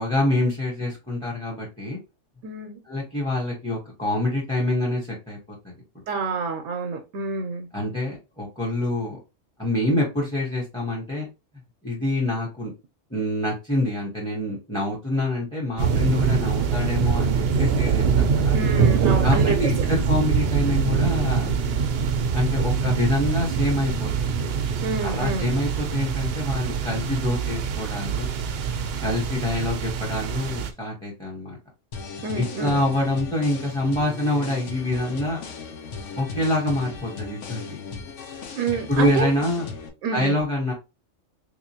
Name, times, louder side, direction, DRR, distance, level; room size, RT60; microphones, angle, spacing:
voice 1, 0.0-2.0 2.9-5.4 7.7-9.2 9.6-11.3 11.8-12.7 13.1-18.5 19.2-21.5 22.3-24.3 25.0-28.3 29.0-31.6 32.3-35.4 36.1-37.8 38.9-39.7 40.1-40.7, left 1 dB, 5° left, 0.9 m, -26 dB
voice 2, 2.4-2.8 6.1-7.7 18.5-19.9 24.8-25.5 32.2-32.8 38.6-39.3 40.0-40.4, right 4 dB, 80° right, 1.0 m, -28 dB
sound 1, 15.8-30.7, right 6 dB, 65° right, 0.7 m, -24 dB
sound 2, 31.9-39.9, left 4 dB, 75° left, 1.1 m, -37 dB
3.6 x 2.9 x 2.7 m
omnidirectional pair, 1.3 m